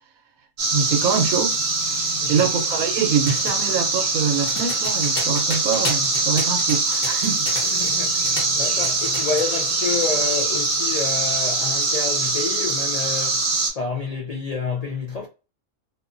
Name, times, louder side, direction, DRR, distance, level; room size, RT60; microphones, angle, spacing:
sound 1, 0.6-13.7, right 3 dB, 55° right, 1.0 m, -23 dB
voice 1, 0.7-1.6 2.3-7.5, right 6 dB, 85° right, 1.1 m, -24 dB
sound 2, 3.2-8.0 8.3-9.5, left 2 dB, 40° left, 0.8 m, -33 dB
voice 2, 7.6-15.3, left 5 dB, 75° left, 0.3 m, -29 dB
2.6 x 2.3 x 2.4 m
omnidirectional pair, 1.4 m